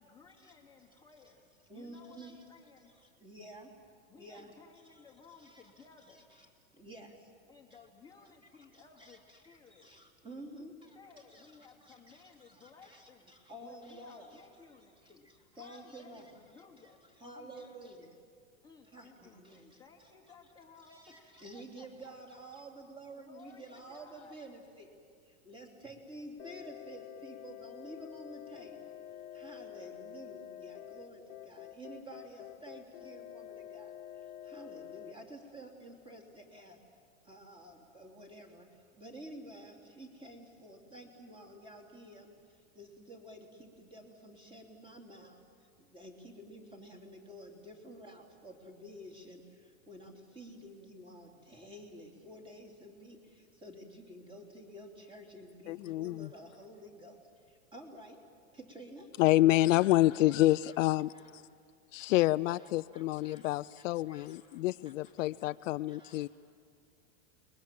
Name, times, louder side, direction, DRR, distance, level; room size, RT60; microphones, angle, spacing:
voice 1, 0.0-2.9 4.1-6.3 7.5-9.9 10.6-13.3 13.6-17.0 17.3-17.7 18.6-22.1 23.2-24.4, left 5 dB, 10° left, -1 dB, 1.4 m, -58 dB
voice 2, 1.7-2.4 2.9-3.7 4.1-7.3 7.7-7.9 8.2-8.3 8.7-16.6 17.0-18.1 18.9-20.3 20.8-24.9 25.2-28.9 29.3-36.8 37.2-58.3 58.5-59.1 59.5-60.8 61.1-61.3 62.5-65.6 65.9-66.3, right 1 dB, 10° right, 1 dB, 3.1 m, -51 dB
sound 1, 26.4-35.1, left 10 dB, 90° left, 1.3 m, -48 dB
voice 3, 55.7-56.2 59.2-61.1 61.9-66.3, left 16 dB, 65° left, 14 dB, 0.5 m, -28 dB
29.5 x 21.5 x 7.5 m, 2.2 s
supercardioid pair, 145°, 41 cm